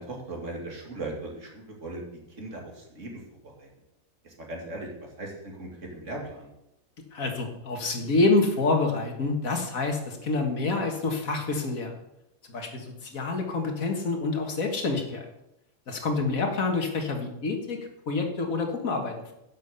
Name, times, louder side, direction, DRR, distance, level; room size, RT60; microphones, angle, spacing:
voice 1, 0.0-2.0 2.3-3.1 3.6-3.7 4.2-6.5, right 2 dB, 60° right, -1 dB, 2.6 m, -38 dB
voice 2, 7.1-12.0 12.5-15.3 15.9-19.3, left 3 dB, 75° left, 3 dB, 2.1 m, -27 dB
10.5 x 6.5 x 6.8 m, 0.86 s
omnidirectional pair, 1.5 m